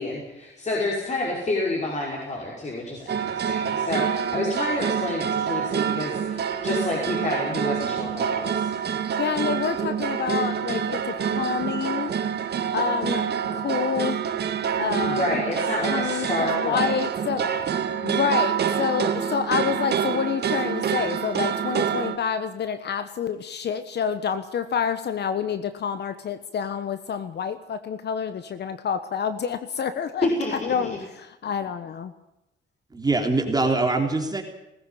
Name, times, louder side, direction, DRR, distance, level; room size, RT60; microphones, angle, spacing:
voice 1, 0.0-8.7 15.0-16.9 17.4-17.5 30.2-30.8, left 2 dB, 35° left, -2 dB, 5.4 m, -29 dB
sound 1, 3.1-22.2, right 8 dB, 55° right, 2.0 m, -27 dB
voice 2, 9.2-12.1 12.7-14.2 14.8-15.4 15.9-17.4 18.0-32.1, left 7 dB, 60° left, 11 dB, 1.3 m, -28 dB
voice 3, 32.9-34.4, right 3 dB, 20° right, 3 dB, 3.5 m, -23 dB
20.0 x 15.0 x 9.0 m, 0.91 s
cardioid pair, 90°, 20 cm